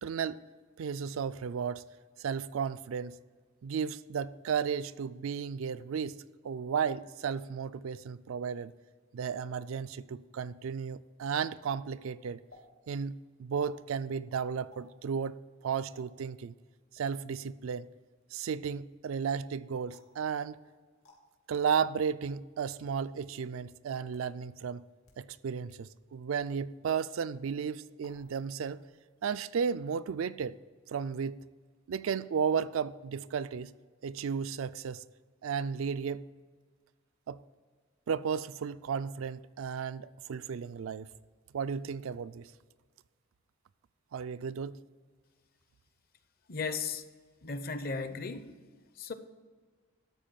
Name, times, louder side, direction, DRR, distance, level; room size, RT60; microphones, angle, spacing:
voice 1, 0.0-0.4 0.8-1.8 2.2-3.2 3.6-8.7 9.1-12.4 12.9-15.4 15.6-16.5 16.9-17.9 18.3-20.6 21.5-24.9 25.2-28.8 29.2-30.6 30.9-31.4 31.9-33.7 34.0-35.0 35.4-36.2 37.3-37.4 38.1-41.1 41.5-42.5 44.1-44.8, right 6 dB, 75° right, 0.4 m, -34 dB
sound 1, 12.5-12.6 13.5-13.8 14.7-14.9 15.9-16.1 16.9-17.2 19.9-20.2 21.0-21.2 22.1-22.2 23.1-23.5 24.1-24.2 24.9-25.2 25.7-25.8 26.4-26.5 28.0-28.4 28.7-29.1, left 1 dB, 85° left, 2.6 m, -59 dB
voice 2, 46.5-47.0 47.4-48.5 49.0-49.1, left 4 dB, 45° left, 0.6 m, -35 dB
12.5 x 4.4 x 7.4 m
head